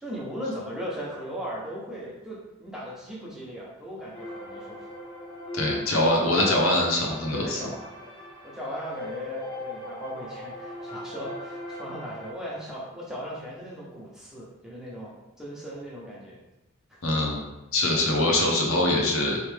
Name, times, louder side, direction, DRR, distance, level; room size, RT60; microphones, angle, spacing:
voice 1, 0.0-4.9 5.7-6.9 7.3-16.4 16.9-17.0 17.9-18.1, equal, 5° right, -6 dB, 0.9 m, -38 dB
sound 1, 4.1-12.3, left 1 dB, 25° left, 0.9 m, -39 dB
voice 2, 5.5-7.6 17.0-19.4, left 1 dB, 75° left, -1 dB, 1.0 m, -23 dB
4.5 x 3.2 x 3.4 m, 0.97 s
head